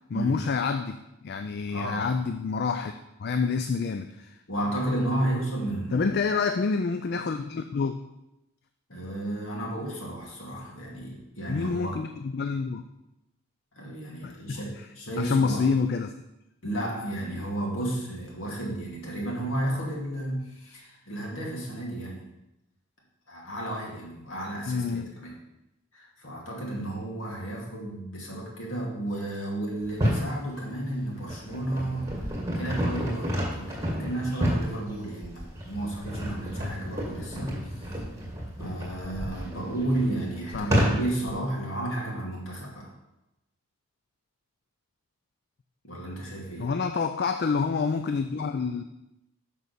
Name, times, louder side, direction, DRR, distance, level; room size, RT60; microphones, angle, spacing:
voice 1, 0.1-1.0 1.2-4.4 5.9-8.0 11.5-12.9 14.2-14.6 15.2-16.1 24.7-25.1 40.5-40.7 46.6-48.8, left 5 dB, 45° left, 8 dB, 0.3 m, -28 dB
voice 2, 1.7-2.2 4.5-6.1 8.9-11.9 13.7-15.7 16.6-22.2 23.3-25.3 25.9-32.1 32.5-37.9 38.6-42.9 45.8-46.7, right 1 dB, 65° left, -3 dB, 2.4 m, -32 dB
sound 1, 29.8-30.3 31.0-41.3, equal, 15° right, 2.0 m, -30 dB
6.2 x 5.4 x 6.8 m, 0.90 s
head